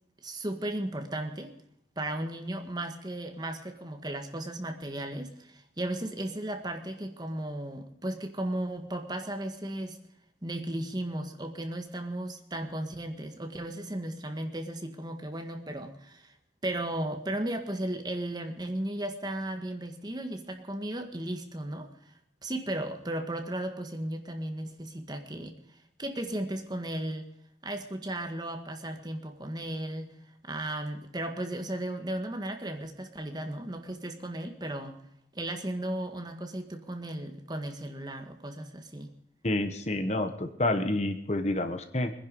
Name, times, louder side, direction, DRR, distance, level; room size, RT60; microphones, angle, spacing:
voice 1, 0.2-1.5 2.0-10.0 10.4-16.3 16.6-22.1 22.4-25.6 26.0-27.3 27.6-30.1 30.4-35.0 35.3-39.1, right 1 dB, 25° right, 5 dB, 1.7 m, -35 dB
voice 2, 39.4-42.1, left 1 dB, 40° left, 8 dB, 1.2 m, -29 dB
23.0 x 10.5 x 5.4 m, 0.76 s
head